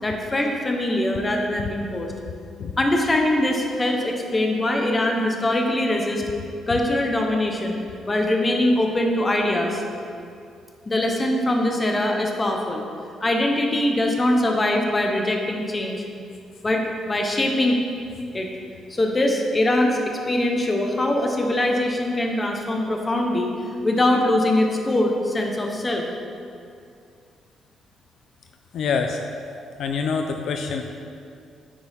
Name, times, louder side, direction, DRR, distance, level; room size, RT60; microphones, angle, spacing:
voice 1, 0.0-2.1 2.8-6.2 6.7-7.8 8.1-9.8 10.9-12.8 13.2-16.0 16.6-17.8 18.3-18.5 18.9-23.5 23.8-26.0, left 1 dB, 15° left, 1 dB, 1.1 m, -22 dB
voice 2, 28.7-29.2 29.8-30.8, left 5 dB, 60° left, 4 dB, 0.5 m, -25 dB
9.7 x 8.7 x 3.6 m, 2.4 s
cardioid pair, 145°, 0 cm